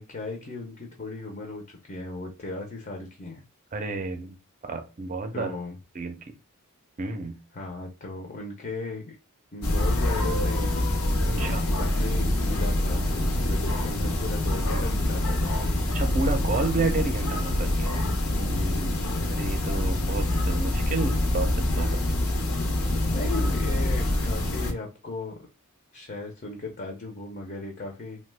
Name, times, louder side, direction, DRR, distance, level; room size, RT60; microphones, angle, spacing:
voice 1, 0.0-3.4 5.3-5.8 7.5-9.1 9.5-10.7 11.3-11.5 11.8-15.7 18.3-19.2 23.1-25.4 25.9-28.2, left 2 dB, 35° left, 1 dB, 0.5 m, -36 dB
voice 2, 3.7-4.4 4.6-5.6 5.9-6.2 7.0-7.4 11.3-11.6 15.9-17.9 19.3-22.1, right 3 dB, 35° right, 7 dB, 0.5 m, -30 dB
sound 1, 9.6-24.7, left 1 dB, 80° left, 0.7 m, -25 dB
2.9 x 2.2 x 3.2 m, 0.30 s
head